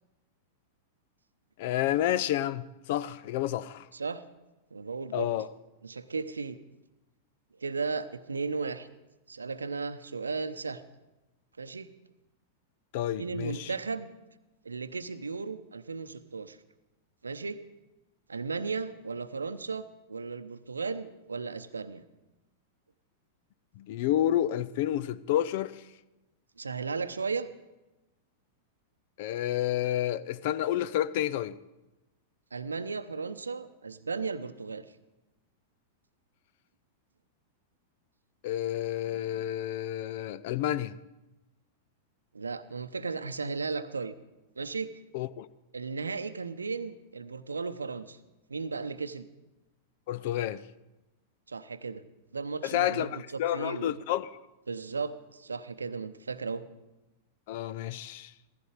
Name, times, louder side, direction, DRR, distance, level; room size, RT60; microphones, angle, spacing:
voice 1, 1.6-3.9 5.1-5.5 12.9-13.7 23.8-25.8 29.2-31.6 38.4-41.0 45.1-45.5 50.1-50.6 52.6-54.3 57.5-58.3, left 12 dB, 50° left, 0.5 m, -30 dB
voice 2, 3.9-4.2 4.7-5.3 5.8-6.6 7.6-8.9 9.3-10.8 11.6-11.9 13.2-14.1 14.6-16.6 17.2-17.6 18.3-22.0 26.6-27.5 32.5-34.9 42.3-44.1 44.6-44.9 45.7-48.2 48.5-49.3 51.5-52.0 52.3-54.0 54.7-56.6, right 4 dB, 80° right, 0.7 m, -35 dB
16.0 x 15.0 x 5.0 m
figure-of-eight pair, 95°, 0 cm